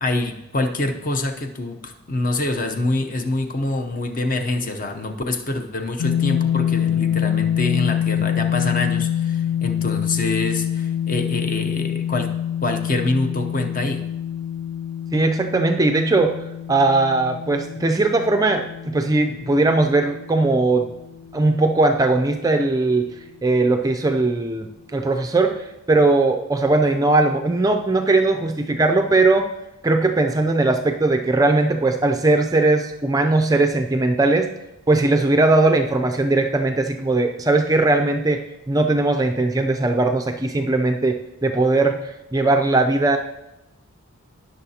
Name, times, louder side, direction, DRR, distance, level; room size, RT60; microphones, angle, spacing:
voice 1, 0.0-12.3 12.6-14.0, left 2 dB, 35° left, 6 dB, 0.7 m, -25 dB
sound 1, 6.0-22.0, left 9 dB, 90° left, 0.5 m, -26 dB
voice 2, 15.1-20.9 21.3-23.1 23.4-29.5 29.8-34.5 34.9-43.2, right 2 dB, 15° right, 5 dB, 0.4 m, -19 dB
19.5 x 6.4 x 2.8 m, 0.93 s
head